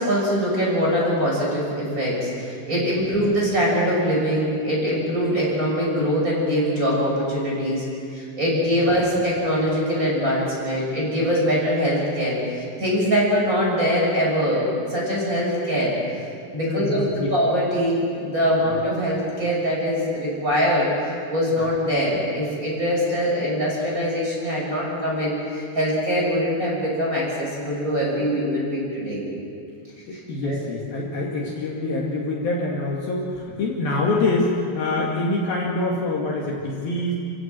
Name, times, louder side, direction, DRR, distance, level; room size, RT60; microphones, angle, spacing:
voice 1, 0.0-7.8 8.1-15.9 16.5-29.2 30.4-30.6, equal, 15° right, -4 dB, 6.5 m, -23 dB
voice 2, 2.7-3.2 8.7-9.1 16.7-17.3 18.6-18.7 21.5-21.6 30.1-37.1, left 2 dB, 55° left, -3 dB, 3.7 m, -26 dB
29.5 x 16.5 x 7.7 m, 2.4 s
omnidirectional pair, 5.5 m